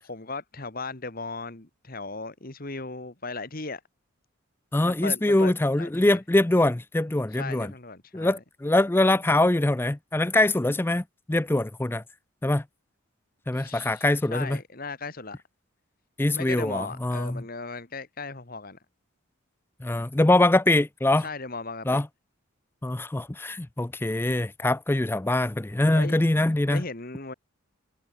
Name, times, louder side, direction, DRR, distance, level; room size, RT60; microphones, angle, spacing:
voice 1, 0.0-3.8 4.8-5.5 5.8-6.2 7.4-8.4 13.5-15.4 16.3-18.8 21.2-22.0 25.9-26.2 26.7-27.3, left 3 dB, 40° left, 1.7 m, -37 dB
voice 2, 4.7-7.7 8.1-12.0 12.4-12.6 13.5-14.6 16.2-17.4 19.8-21.3 21.9-22.1 22.8-26.8, left 2 dB, 10° left, 0.4 m, -23 dB
head